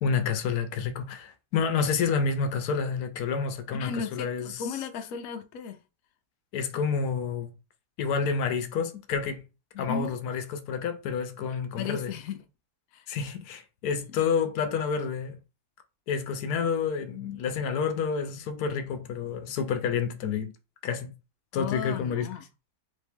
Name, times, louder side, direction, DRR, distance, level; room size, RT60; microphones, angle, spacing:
voice 1, 0.0-4.7 6.5-7.5 8.0-9.4 9.8-12.1 13.1-15.4 16.1-20.5 20.8-21.1 21.5-22.3, left 6 dB, 85° left, 1.2 m, -29 dB
voice 2, 3.7-5.8 9.7-10.1 11.8-12.4 12.9-13.1 14.1-14.2 21.5-22.4, left 6 dB, 70° left, 1.0 m, -35 dB
3.4 x 3.1 x 3.5 m
omnidirectional pair, 1.6 m